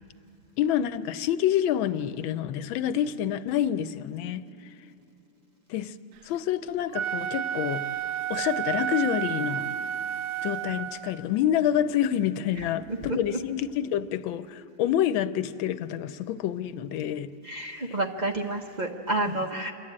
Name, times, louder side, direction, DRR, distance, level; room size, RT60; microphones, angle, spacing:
voice 1, 0.6-4.4 5.7-5.9 6.2-7.8 8.3-9.7 10.4-17.3 17.8-18.0, left 10 dB, 90° left, 13 dB, 1.4 m, -27 dB
Wind instrument woodwind instrument, 6.8-11.2, right 10 dB, 70° right, 1.0 m, -31 dB
voice 2, 17.4-19.7, right 2 dB, 40° right, 1 dB, 0.6 m, -29 dB
27.5 x 11.5 x 8.6 m, 3.0 s
omnidirectional pair, 2.1 m